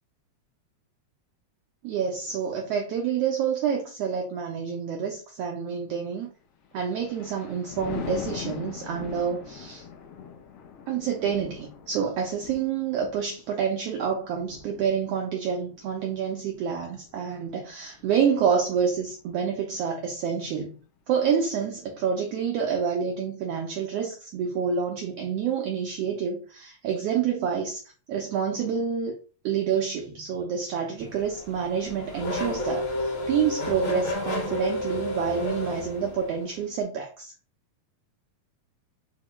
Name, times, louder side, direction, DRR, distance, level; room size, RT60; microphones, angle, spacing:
voice 1, 1.8-6.3 6.7-9.9 10.9-20.7 21.1-27.8 28.1-29.1 29.4-37.3, right 7 dB, 85° right, 1.3 m, -28 dB
Thunder, 6.6-18.1 18.6-18.9, left 7 dB, 80° left, 1.4 m, -42 dB
Race car auto racing / Accelerating revving vroom, 31.0-36.6, left 2 dB, 60° left, 1.4 m, -31 dB
4.6 x 2.1 x 2.9 m
omnidirectional pair, 3.3 m